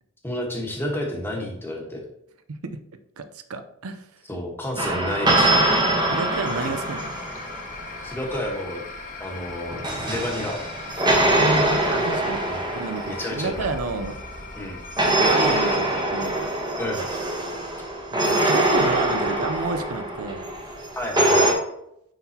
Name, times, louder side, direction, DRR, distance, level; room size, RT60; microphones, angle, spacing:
voice 1, 0.2-2.1 4.3-5.6 6.6-6.8 8.0-8.8 9.2-10.6 12.5-12.6 13.0-13.7 14.5-14.8 16.8-17.1 20.9-21.6, left 1 dB, 10° left, -1 dB, 1.2 m, -30 dB
voice 2, 3.5-4.1 6.1-7.1 11.3-14.2 15.2-16.5 18.1-20.7, right 3 dB, 85° right, 9 dB, 0.6 m, -30 dB
sound 1, 4.8-7.9 9.5-14.4 15.0-21.5, right 1 dB, 20° right, 1.1 m, -23 dB
sound 2, 6.0-16.0, left 4 dB, 40° left, 0.9 m, -40 dB
10.0 x 3.9 x 2.8 m, 0.75 s
head